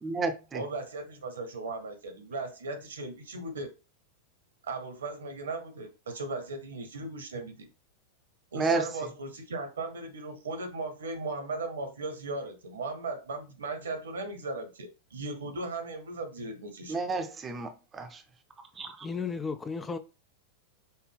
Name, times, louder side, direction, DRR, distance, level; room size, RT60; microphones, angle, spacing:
voice 1, 0.0-0.6 8.6-8.8 16.9-18.2 18.8-19.1, right 3 dB, 20° right, 0.7 m, -31 dB
voice 2, 0.5-3.7 4.6-7.7 8.5-17.0, right 3 dB, 70° right, 1.0 m, -37 dB
voice 3, 19.0-20.0, left 5 dB, 15° left, 0.3 m, -34 dB
5.6 x 2.1 x 3.5 m
figure-of-eight pair, 90°, 0 cm